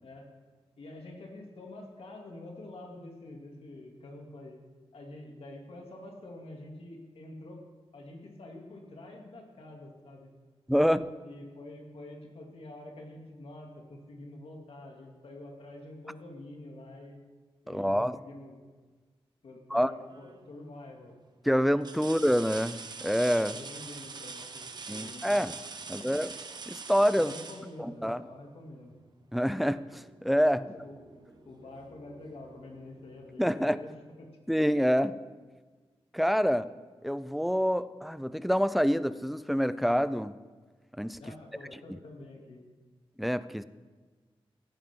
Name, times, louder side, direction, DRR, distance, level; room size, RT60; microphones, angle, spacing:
voice 1, 0.8-4.6 4.9-7.6 7.9-10.3 11.2-17.2 17.6-18.6 19.4-21.1 23.4-25.4 26.0-26.1 27.2-29.0 30.6-31.0 31.4-33.9 34.2-34.3 41.2-42.6, left 2 dB, 70° left, 1 dB, 2.5 m, -47 dB
voice 2, 10.7-11.1 17.7-18.2 19.7-19.9 21.4-23.6 24.9-25.5 25.9-26.3 26.7-27.3 27.8-28.2 29.3-30.7 33.4-33.8 34.5-35.2 36.1-36.7 37.0-40.4 41.0-41.2 41.9-42.0 43.2-43.6, equal, ahead, 15 dB, 0.4 m, -27 dB
sound 1, 20.1-20.5 21.1-21.2 21.8-28.5 30.3-30.4 30.9-31.9 33.2-33.3, right 4 dB, 45° right, 0.9 m, -43 dB
sound 2, 29.4-34.3, right 1 dB, 60° right, 5.4 m, -59 dB
15.5 x 14.5 x 3.7 m, 1.4 s
wide cardioid pair, 175°, 10 cm